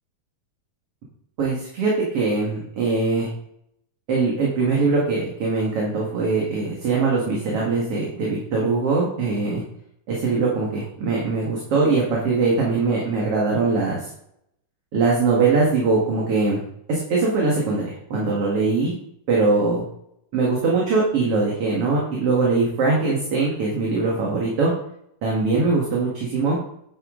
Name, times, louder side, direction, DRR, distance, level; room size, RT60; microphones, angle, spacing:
voice 1, 1.4-3.3 4.1-9.6 10.1-14.1 14.9-16.6 16.9-18.9 19.3-19.8 20.3-24.7 25.2-26.6, right 3 dB, 50° right, -3 dB, 2.7 m, -21 dB
10.5 x 8.4 x 3.8 m, 0.73 s
omnidirectional pair, 3.5 m